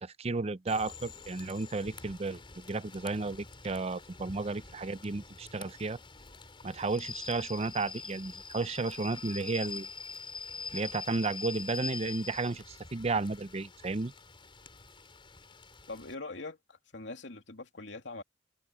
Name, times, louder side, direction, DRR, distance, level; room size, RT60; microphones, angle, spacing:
voice 1, 0.0-6.0 6.6-9.9 10.7-14.1, right 3 dB, 35° right, 0.6 m, -33 dB
Rain / Train, 0.7-16.1, left 4 dB, 30° left, 5.1 m, -45 dB
voice 2, 15.9-18.2, left 3 dB, 85° left, 2.8 m, -43 dB
head